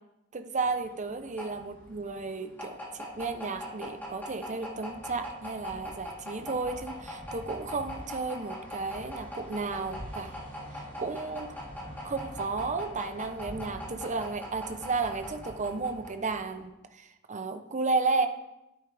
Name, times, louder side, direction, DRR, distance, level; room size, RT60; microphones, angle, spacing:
voice 1, 0.3-10.4 10.7-11.5 12.0-18.3, right 4 dB, 35° right, 8 dB, 0.8 m, -33 dB
sound 1, 0.6-16.6, equal, 10° left, 3.4 m, -41 dB
12.0 x 9.2 x 3.5 m, 0.91 s
head